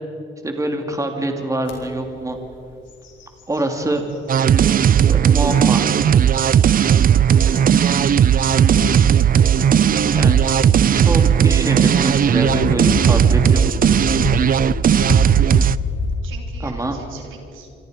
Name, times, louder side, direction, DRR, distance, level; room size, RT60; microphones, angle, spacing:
voice 1, 0.4-2.4 3.5-4.0 5.1-5.9 10.1-10.4 10.9-13.6 16.6-17.0, right 1 dB, 15° right, 4 dB, 2.5 m, -24 dB
sound 1, 1.7-1.8 2.3-2.5 2.9-4.4 5.0-5.1 6.8-16.1, left 3 dB, 70° left, 4.5 m, -28 dB
sound 2, 4.3-15.8, right 9 dB, 45° right, 0.6 m, -15 dB
voice 2, 7.4-8.0 16.2-17.7, right 6 dB, 80° right, 1 dB, 3.9 m, -43 dB
26.5 x 24.5 x 5.1 m, 2.6 s
cardioid pair, 90°, 20 cm